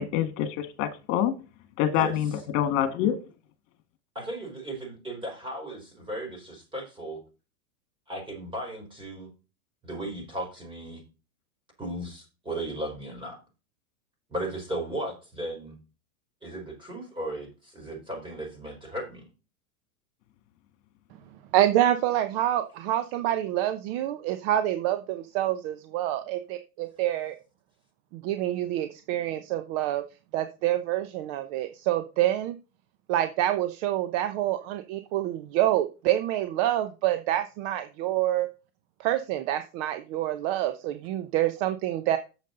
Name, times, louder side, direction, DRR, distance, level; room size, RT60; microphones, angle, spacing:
voice 1, 0.0-1.3 1.8-3.1, left 10 dB, 50° left, 9 dB, 2.0 m, -26 dB
voice 2, 4.3-7.2 8.1-9.3 9.8-11.0 11.8-13.4 14.3-15.7 16.4-19.2, right 1 dB, 10° right, 1 dB, 4.5 m, -36 dB
voice 3, 21.5-27.4 28.1-30.0 30.3-32.6 33.1-38.5 39.0-42.2, right 13 dB, 45° right, 9 dB, 0.9 m, -27 dB
9.2 x 7.3 x 3.9 m, 0.31 s
supercardioid pair, 135°, 44 cm